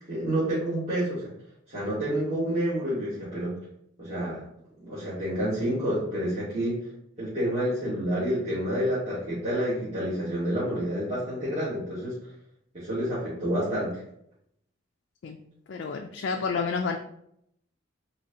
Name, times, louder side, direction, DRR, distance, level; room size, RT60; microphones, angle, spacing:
voice 1, 0.1-1.3 1.7-3.5 4.0-4.4 4.8-6.8 7.2-12.1 12.7-14.0, equal, 30° right, -13 dB, 1.4 m, -29 dB
voice 2, 15.7-17.0, left 5 dB, 60° left, 3 dB, 0.3 m, -29 dB
4.2 x 2.8 x 2.6 m, 0.74 s
head